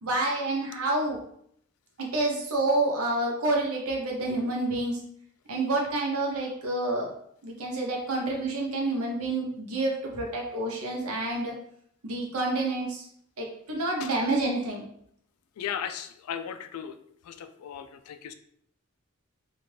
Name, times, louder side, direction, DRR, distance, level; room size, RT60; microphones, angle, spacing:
voice 1, 0.0-1.2 2.0-5.0 5.5-7.1 7.4-11.5 12.0-13.1 13.4-14.8, right 2 dB, 80° right, -1 dB, 0.8 m, -28 dB
voice 2, 15.6-17.0 17.2-18.3, left 8 dB, 90° left, 9 dB, 0.3 m, -36 dB
2.7 x 2.4 x 3.2 m, 0.69 s
head